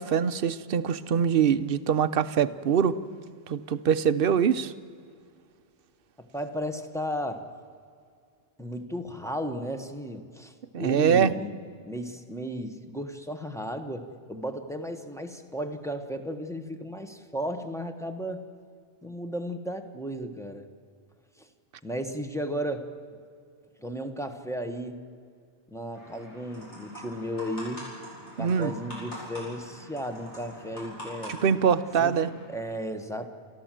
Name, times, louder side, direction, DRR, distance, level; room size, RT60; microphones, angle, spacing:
voice 1, 0.0-3.0 3.5-4.7 10.7-11.3 28.4-28.7 31.3-32.3, right 7 dB, 55° right, 14 dB, 0.9 m, -23 dB
voice 2, 6.2-7.5 8.6-11.5 11.8-18.5 19.0-20.7 21.4-21.5 21.8-22.9 23.8-25.0 25.7-27.8 28.4-31.4 32.0-32.2 32.5-33.3, equal, 5° left, 6 dB, 1.3 m, -34 dB
sound 1, 25.9-32.4, equal, 75° left, 7.8 m, -44 dB
29.0 x 13.5 x 7.7 m, 2.2 s
omnidirectional pair, 1.2 m